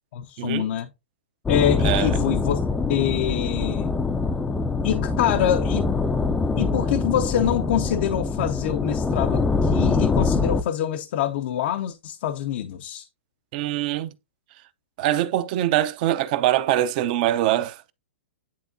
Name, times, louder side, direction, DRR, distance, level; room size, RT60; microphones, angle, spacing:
voice 1, 0.1-0.9 1.5-2.6 2.9-3.9 4.8-5.9 6.6-13.1, left 10 dB, 55° left, 0.6 m, -25 dB
sound 1, 1.5-10.6, left 4 dB, 10° left, 0.4 m, -24 dB
voice 2, 1.8-2.2 13.5-14.1 15.0-17.9, right 13 dB, 45° right, 0.6 m, -23 dB
10.0 x 3.5 x 2.6 m
hypercardioid pair, 140°, 6 cm